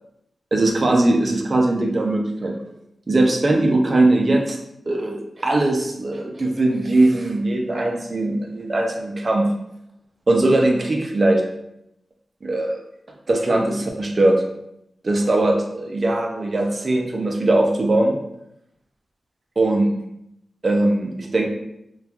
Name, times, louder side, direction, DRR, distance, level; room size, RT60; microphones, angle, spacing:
voice 1, 0.5-2.6 3.1-4.6 4.9-9.5 10.3-11.4 12.4-12.8 13.3-14.4 15.0-18.1 19.6-19.9 20.6-21.5, right 2 dB, 35° right, 2 dB, 0.3 m, -20 dB
2.8 x 2.2 x 2.3 m, 0.79 s
wide cardioid pair, 160°, 0 cm